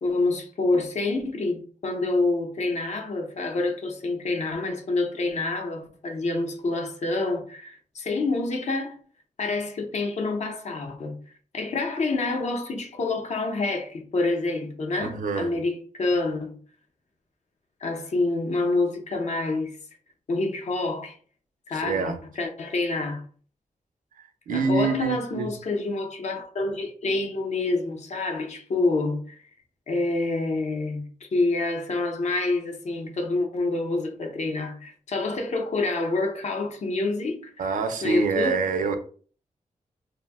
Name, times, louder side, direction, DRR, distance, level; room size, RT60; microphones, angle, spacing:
voice 1, 0.0-9.0 9.4-11.2 11.5-16.5 17.8-19.8 20.3-21.2 21.7-23.2 24.5-29.4 29.9-37.7 38.0-38.7, left 2 dB, 55° left, 0.6 m, -27 dB
voice 2, 15.0-15.5 21.7-22.2 24.5-25.5 37.6-39.0, right 4 dB, 70° right, 0.5 m, -26 dB
2.6 x 2.1 x 3.3 m
wide cardioid pair, 150°, 14 cm